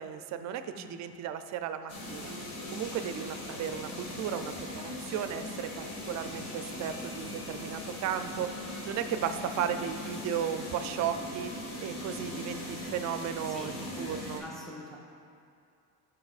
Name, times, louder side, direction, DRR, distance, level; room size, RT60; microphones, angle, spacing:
voice 1, 0.0-2.3 2.7-8.6 8.9-14.4, right 9 dB, 50° right, 9 dB, 0.4 m, -35 dB
sound 1, 1.9-14.4, left 1 dB, 65° left, 1.9 m, -40 dB
voice 2, 14.4-15.0, left 1 dB, ahead, -4 dB, 0.9 m, -44 dB
13.5 x 6.1 x 2.4 m, 2.4 s
cardioid pair, 140°, 35 cm